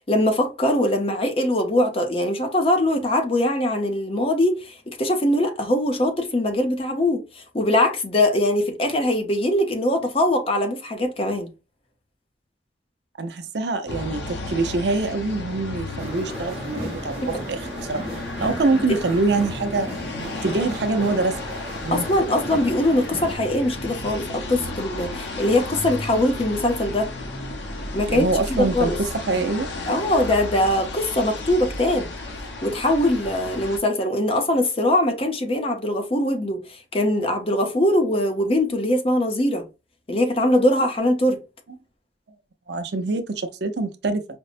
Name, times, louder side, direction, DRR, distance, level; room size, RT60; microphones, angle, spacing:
voice 1, 0.1-11.5 16.8-16.9 18.7-19.0 21.9-27.1 27.9-29.0 29.9-32.1 32.6-39.6 40.1-41.4, left 1 dB, 30° left, 0.7 m, -22 dB
voice 2, 13.2-18.0 18.4-19.9 20.4-22.1 28.1-29.7 42.7-44.4, right 3 dB, 75° right, 0.6 m, -25 dB
sound 1, 13.9-33.8, left 2 dB, 80° left, 0.8 m, -33 dB
sound 2, 16.0-23.4, right 1 dB, 35° right, 0.9 m, -36 dB
5.1 x 2.0 x 2.5 m
head